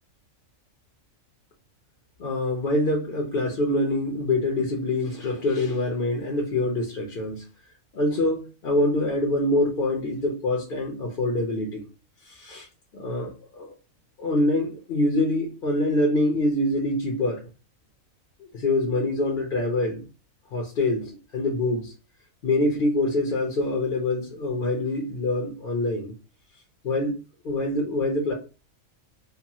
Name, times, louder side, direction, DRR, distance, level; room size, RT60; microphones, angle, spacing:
voice 1, 2.2-7.5 7.9-11.8 12.2-12.7 12.9-13.7 14.2-17.4 18.4-20.0 20.5-21.9 22.4-26.1 26.8-27.2 27.4-28.3, left 2 dB, 50° left, 0.7 m, -25 dB
2.9 x 2.1 x 2.8 m
omnidirectional pair, 1.4 m